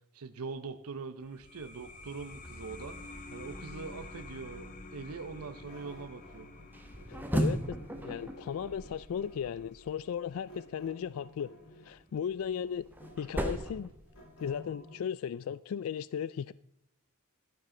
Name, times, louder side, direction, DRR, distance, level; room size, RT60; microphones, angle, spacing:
voice 1, 0.1-6.5, right 4 dB, 80° right, 0.7 m, -43 dB
sound 1, 1.2-12.4, left 2 dB, 35° left, 1.1 m, -50 dB
sound 2, 3.8-6.7 6.9-9.6 10.5-12.0 12.5-15.0, equal, 85° left, 5.0 m, -54 dB
sound 3, 6.7-9.9 12.1-14.7, right 1 dB, 10° right, 1.1 m, -36 dB
voice 2, 7.1-7.8 8.0-11.5 11.8-12.9 13.2-13.9 14.4-16.5, left 8 dB, 65° left, 0.3 m, -36 dB
12.0 x 12.0 x 3.8 m
head